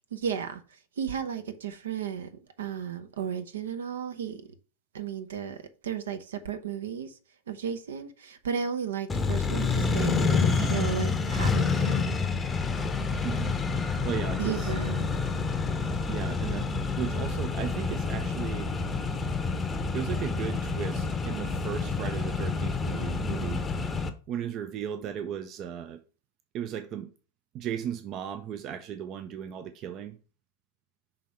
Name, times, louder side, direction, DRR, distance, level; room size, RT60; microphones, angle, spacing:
voice 1, 0.1-0.6 1.0-2.3 2.6-4.4 4.9-7.1 7.5-12.1 14.4-15.2, right 8 dB, 65° right, 0.8 m, -34 dB
Accelerating revving vroom, 9.1-24.1, left 4 dB, 15° left, 0.8 m, -28 dB
voice 2, 13.2-13.6 14.0-14.7 16.1-18.7 19.9-23.6 24.3-26.0 26.5-27.1 27.5-30.2, right 9 dB, 35° right, 0.5 m, -36 dB
5.9 x 3.6 x 5.4 m
figure-of-eight pair, 90°, 0 cm